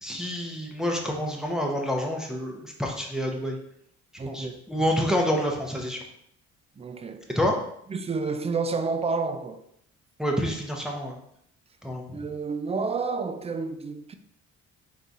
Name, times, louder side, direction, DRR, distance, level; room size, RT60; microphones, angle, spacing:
voice 1, 0.0-3.6 4.3-6.0 7.3-7.5 10.2-11.2 11.8-12.2, equal, ahead, 0.7 m, -28 dB
voice 2, 4.2-4.5 6.8-7.3 7.9-9.6 12.1-14.1, right 4 dB, 20° right, 0.3 m, -30 dB
3.8 x 2.8 x 3.6 m
cardioid pair, 90°, 30 cm